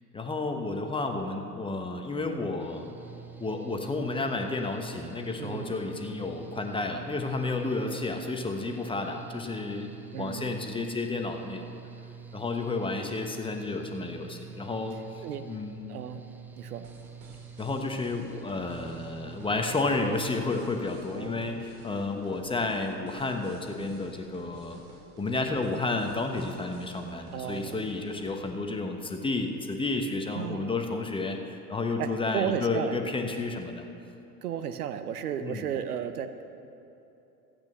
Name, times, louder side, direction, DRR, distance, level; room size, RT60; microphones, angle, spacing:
voice 1, 0.1-2.9 3.4-9.9 10.2-11.7 12.3-15.9 17.6-24.8 25.2-33.9 35.4-35.6, left 3 dB, 10° left, 4 dB, 1.0 m, -31 dB
Mechanical fan, 2.6-21.1, right 6 dB, 5° right, 0.3 m, -47 dB
voice 2, 5.4-5.7 7.8-8.0 10.1-10.5 15.2-15.5 15.9-16.2 16.6-16.9 21.1-21.6 27.3-27.9 30.3-30.7 32.0-33.0 34.4-36.4, right 9 dB, 70° right, 10 dB, 0.8 m, -34 dB
sound 1, 16.8-28.6, right 2 dB, 50° right, 2.3 m, -53 dB
13.5 x 8.9 x 6.7 m, 2.8 s
figure-of-eight pair, 80°, 47 cm